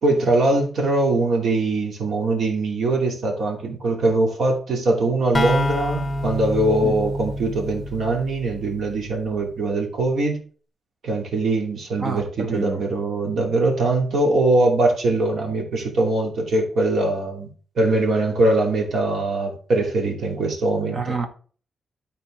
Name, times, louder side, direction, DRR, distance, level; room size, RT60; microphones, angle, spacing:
voice 1, 0.0-10.4 11.0-17.5 17.8-21.2, right 2 dB, 60° right, 0 dB, 2.7 m, -22 dB
sound 1, 5.3-9.0, left 1 dB, 20° left, 0.8 m, -27 dB
voice 2, 12.0-12.8 20.9-21.3, right 4 dB, 40° right, 6 dB, 1.1 m, -28 dB
12.5 x 4.4 x 3.7 m, 0.42 s
wide cardioid pair, 145°, 0 cm